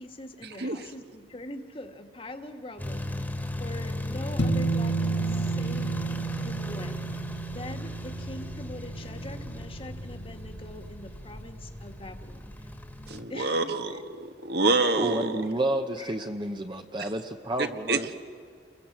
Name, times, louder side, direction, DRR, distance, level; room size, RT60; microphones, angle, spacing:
voice 1, 0.0-3.2 3.6-5.9 6.4-7.0 7.5-12.5 13.3-13.7 15.2-15.3 16.0-16.2, left 1 dB, 30° left, 6 dB, 1.7 m, -42 dB
sound 1, 2.8-13.2, left 1 dB, 10° left, 1.7 m, -36 dB
sound 2, 4.4-11.0, right 4 dB, 80° left, 1.7 m, -33 dB
voice 2, 13.1-15.4 17.9-18.0, right 3 dB, 65° right, 7 dB, 1.4 m, -27 dB
voice 3, 14.9-18.1, right 1 dB, 25° right, 4 dB, 0.9 m, -30 dB
30.0 x 22.0 x 7.4 m, 2.1 s
head